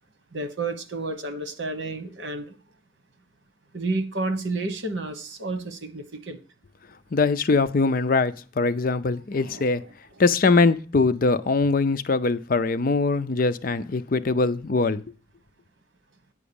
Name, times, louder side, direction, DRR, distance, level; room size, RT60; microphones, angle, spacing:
voice 1, 0.3-2.6 3.7-6.4 9.3-9.9, right 2 dB, 85° right, 1.3 m, -31 dB
voice 2, 7.1-9.8 10.2-15.0, left 3 dB, 50° left, 0.5 m, -22 dB
9.5 x 4.9 x 7.0 m
head